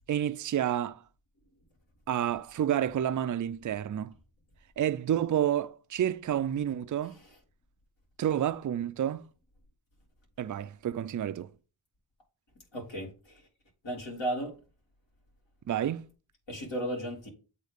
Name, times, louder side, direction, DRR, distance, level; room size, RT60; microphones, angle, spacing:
voice 1, 0.1-1.0 2.1-4.1 4.8-7.2 8.2-9.2 10.4-11.5 15.7-16.0, right 10 dB, 40° right, 0.4 m, -29 dB
voice 2, 12.7-13.4 13.8-14.6 16.5-17.3, right 1 dB, 70° left, 2.9 m, -35 dB
7.9 x 2.9 x 5.1 m
cardioid pair, 65°, 47 cm